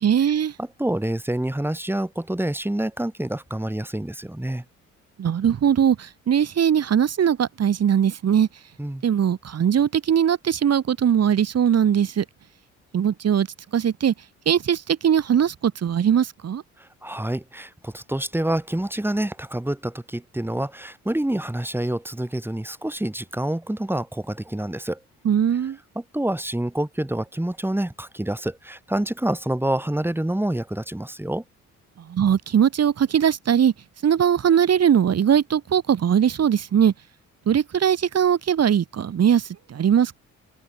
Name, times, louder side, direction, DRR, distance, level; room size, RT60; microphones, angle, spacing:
voice 1, 0.0-0.5 5.2-8.5 9.0-12.2 12.9-13.5 13.7-14.1 14.5-16.6 25.3-25.8 32.1-33.7 34.0-36.9 37.5-39.4 39.7-40.2, right 8 dB, 55° right, 3.7 m, -20 dB
voice 2, 0.6-4.6 8.8-9.0 16.8-25.0 25.9-31.4, right 1 dB, 5° right, 7.5 m, -27 dB
open air
cardioid pair, 90°, 30 cm